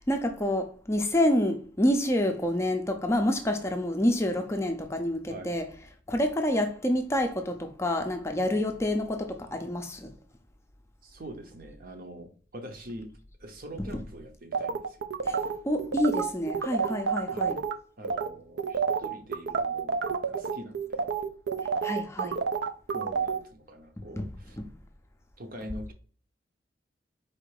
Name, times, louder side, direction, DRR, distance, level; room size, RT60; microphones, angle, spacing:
voice 1, 0.0-5.7 6.1-10.1 13.8-13.9 15.2-17.6 21.8-22.4 24.2-24.3 24.6-24.7, left 1 dB, 15° left, 0.5 m, -28 dB
voice 2, 11.0-13.1 13.4-15.0 17.3-17.6 18.0-20.0 20.3-21.1 22.9-24.6 25.4-25.9, right 1 dB, 50° right, 0.8 m, -44 dB
sound 1, 14.5-17.7 18.0-18.3 18.6-23.4, right 5 dB, 75° right, 0.5 m, -29 dB
4.3 x 2.5 x 4.7 m
head